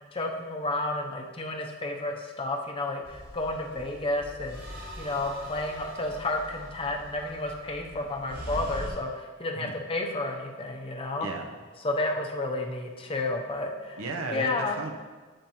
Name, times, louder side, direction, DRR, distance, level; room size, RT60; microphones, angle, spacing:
voice 1, 0.1-11.3 11.8-14.0 14.3-14.8, left 2 dB, 25° left, 2 dB, 0.6 m, -31 dB
sound 1, 3.0-8.9, equal, 45° right, 2.1 m, -42 dB
voice 2, 11.2-11.5 14.0-14.9, right 3 dB, 70° right, 4 dB, 0.8 m, -34 dB
13.0 x 5.2 x 3.0 m, 1.4 s
head